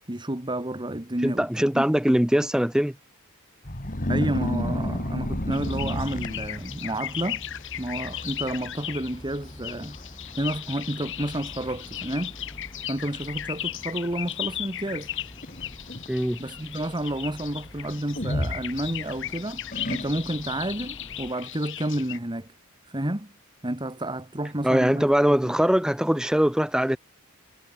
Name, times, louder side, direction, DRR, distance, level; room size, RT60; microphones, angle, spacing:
voice 1, 0.1-1.8 4.1-7.4 7.8-10.0 10.4-12.3 12.9-15.1 16.4-22.5 22.9-23.3 23.6-25.5, right 1 dB, 20° right, 1.9 m, -30 dB
voice 2, 1.2-2.9 16.1-16.4 24.6-27.0, equal, 5° right, 0.5 m, -22 dB
sound 1, 3.6-6.9 7.6-7.8 8.1-8.6 8.8-8.9 9.7-9.8 10.3-10.4 10.9-11.4 12.2-12.3 15.1-16.1 18.2-19.2 19.7-20.5, left 1 dB, 35° left, 2.9 m, -30 dB
sound 2, 5.5-22.2, left 12 dB, 55° left, 1.9 m, -37 dB
sound 3, 5.5-21.3, left 1 dB, 20° left, 2.3 m, -46 dB
head